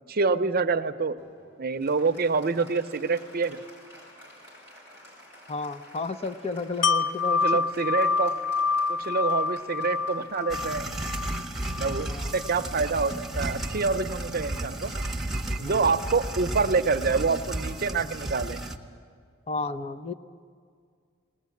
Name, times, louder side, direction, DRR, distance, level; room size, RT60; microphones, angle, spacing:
voice 1, 0.1-1.1 1.6-3.6 7.4-8.4 8.9-10.9 11.8-14.9 15.6-18.6, right 4 dB, 50° right, 9 dB, 0.7 m, -26 dB
Applause, 1.2-13.1, left 1 dB, 65° left, 5.6 m, -52 dB
voice 2, 5.5-7.4 12.1-12.3 15.6-15.9 19.5-20.1, left 3 dB, 30° left, 9 dB, 0.6 m, -32 dB
Wind chime, 6.8-12.6 13.0-13.1, left 4 dB, 80° left, 0.6 m, -28 dB
sound 1, 10.5-18.8, right 1 dB, ahead, 1.1 m, -33 dB
20.0 x 19.0 x 8.4 m, 2.2 s
head